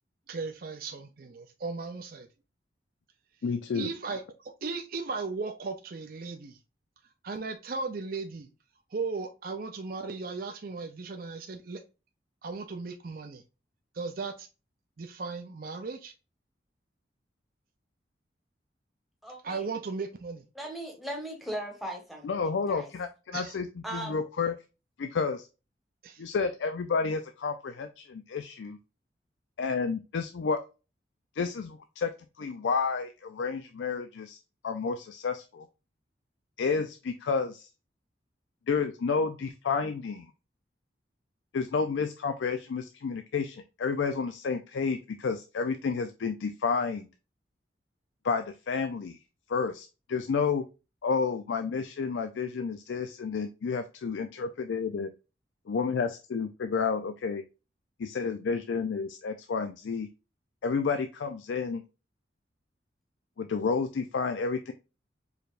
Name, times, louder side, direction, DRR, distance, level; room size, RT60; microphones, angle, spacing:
voice 1, 0.3-2.3 3.7-6.6 7.2-8.5 8.9-11.8 12.4-13.4 13.9-14.5 15.0-16.1 19.4-20.4 23.3-23.6 26.0-26.2, right 4 dB, 50° right, 5 dB, 0.5 m, -36 dB
voice 2, 3.4-3.9 22.2-24.5 25.0-25.5 26.2-27.9 28.3-28.8 29.6-30.6 31.4-32.1 32.4-34.4 34.6-35.7 36.6-37.7 38.7-40.3 41.5-47.1 48.2-49.2 49.5-50.6 51.0-55.1 55.7-57.4 58.0-60.1 60.6-61.8 63.4-64.7, left 5 dB, 85° left, 8 dB, 0.4 m, -30 dB
voice 3, 19.2-19.6 20.5-22.9 23.8-24.2, right 1 dB, ahead, 0 dB, 1.2 m, -38 dB
4.8 x 3.3 x 2.4 m, 0.30 s
head